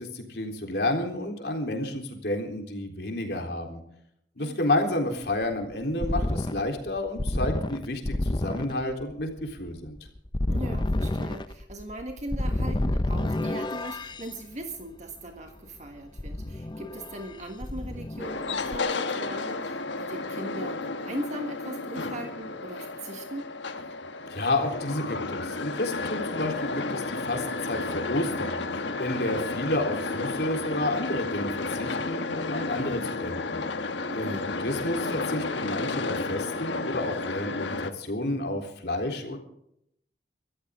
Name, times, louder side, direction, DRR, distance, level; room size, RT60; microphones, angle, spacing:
voice 1, 0.0-3.8 4.4-10.0 24.3-33.6 34.2-39.4, left 1 dB, 65° left, 2 dB, 3.7 m, -30 dB
sound 1, 5.2-14.3 16.2-17.3 17.6-18.8, left 1 dB, 25° left, 0.7 m, -29 dB
voice 2, 10.5-23.5 34.0-34.5, right 1 dB, 40° right, 4 dB, 1.6 m, -39 dB
sound 2, 18.2-37.9, left 3 dB, 90° left, 1.4 m, -32 dB
24.5 x 14.0 x 3.7 m, 0.73 s
head